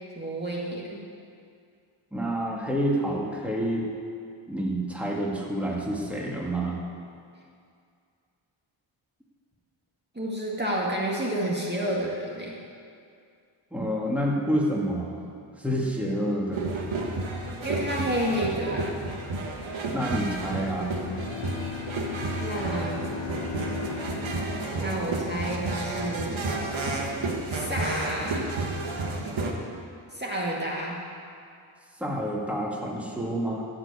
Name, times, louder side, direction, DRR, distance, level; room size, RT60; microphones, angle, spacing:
voice 1, 0.2-1.0 10.1-12.6 17.6-19.0 22.4-23.0 24.8-26.4 27.5-28.5 30.1-31.0, right 1 dB, 20° right, -4 dB, 2.0 m, -30 dB
voice 2, 2.1-3.9 4.5-6.8 13.7-15.2 15.6-16.6 19.9-20.9 32.0-33.6, equal, 5° right, -2 dB, 2.1 m, -28 dB
sound 1, 16.5-29.5, right 2 dB, 65° right, 1.5 m, -31 dB
Bowed string instrument, 21.0-26.2, left 9 dB, 60° left, 0.7 m, -38 dB
15.5 x 5.3 x 8.3 m, 2.4 s
cardioid pair, 60°, 50 cm